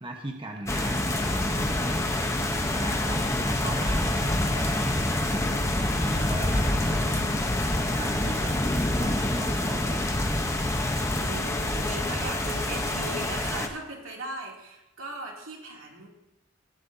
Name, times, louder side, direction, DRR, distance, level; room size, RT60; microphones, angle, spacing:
voice 1, 0.0-10.3, right 1 dB, 25° right, 2 dB, 1.1 m, -39 dB
sound 1, 0.7-13.7, left 1 dB, 15° left, 0.9 m, -26 dB
voice 2, 6.7-7.2 10.3-10.4 11.2-16.1, right 2 dB, 90° right, -2 dB, 2.8 m, -38 dB
16.5 x 10.5 x 2.8 m, 0.94 s
head